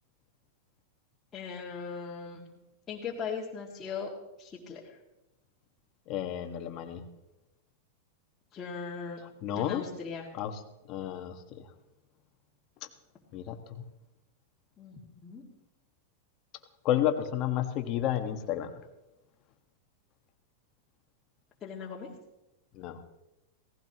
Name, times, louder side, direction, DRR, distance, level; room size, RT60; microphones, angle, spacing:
voice 1, 1.3-2.5 2.9-4.1 4.4-5.0 8.5-9.2 9.5-10.3 14.8-15.4 21.6-22.1, left 6 dB, 25° left, -7 dB, 2.2 m, -39 dB
voice 2, 6.1-7.0 9.4-9.8 10.3-10.6 10.9-11.7 13.3-13.8 16.8-18.8 22.7-23.0, left 11 dB, 45° left, 6 dB, 1.5 m, -31 dB
17.5 x 15.5 x 3.0 m, 0.95 s
hypercardioid pair, 125°, 0 cm